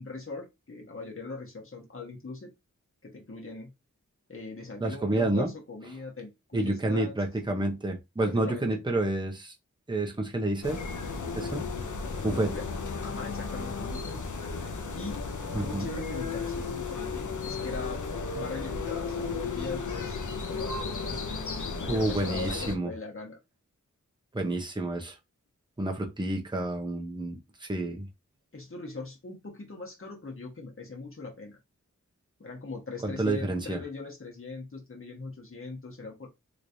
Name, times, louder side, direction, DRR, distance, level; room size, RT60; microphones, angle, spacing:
voice 1, 0.0-2.5 3.0-3.7 4.3-7.1 8.2-8.8 12.3-12.6 13.0-14.2 14.9-18.0 18.3-20.2 20.5-21.2 21.7-23.4 28.5-31.6 32.4-36.3, left 3 dB, 45° left, 1.3 m, -40 dB
voice 2, 4.8-5.5 6.5-9.5 9.9-10.8 11.4-11.7 12.2-12.5 15.5-15.9 21.9-22.9 24.3-25.1 25.8-28.1 33.0-33.8, right 2 dB, 15° right, 0.8 m, -29 dB
sound 1, 10.6-22.8, left 4 dB, 85° left, 0.6 m, -34 dB
3.1 x 3.1 x 2.6 m
wide cardioid pair, 65°, 30 cm